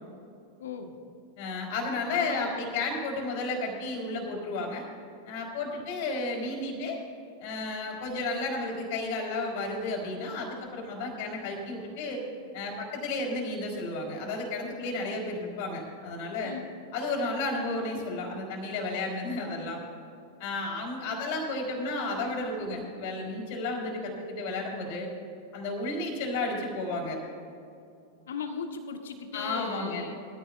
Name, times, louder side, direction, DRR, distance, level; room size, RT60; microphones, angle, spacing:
voice 1, 0.6-0.9 2.1-2.6 16.4-16.7 28.3-30.1, left 5 dB, 65° left, 6 dB, 1.2 m, -37 dB
voice 2, 1.4-4.9 5.3-7.0 7.4-12.2 12.5-16.5 16.9-19.8 20.4-25.1 25.5-27.2 29.3-30.1, left 2 dB, 50° left, 1 dB, 3.6 m, -32 dB
21.5 x 14.5 x 2.4 m, 2.6 s
figure-of-eight pair, 90°, 0 cm